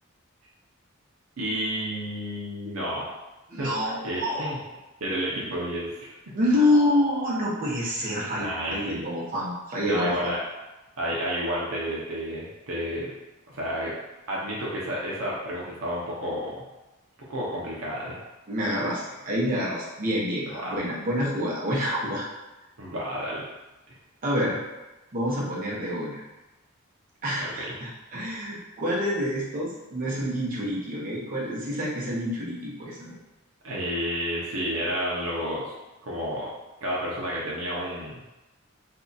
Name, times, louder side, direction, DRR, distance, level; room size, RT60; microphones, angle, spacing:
voice 1, 1.4-3.1 3.6-3.7 4.0-4.6 5.0-6.1 8.4-9.0 9.9-10.4 11.0-13.1 13.5-13.9 14.3-16.6 17.3-18.2 20.5-20.8 22.8-23.5 27.4-27.7 33.6-35.7 36.0-36.5 36.8-38.2, equal, 70° right, -5 dB, 0.7 m, -30 dB
voice 2, 3.5-4.5 5.4-5.5 6.3-10.3 18.5-22.3 24.2-24.6 25.1-26.2 27.2-33.1, left 1 dB, 40° right, -6 dB, 0.9 m, -27 dB
2.7 x 2.3 x 3.9 m, 1.1 s
head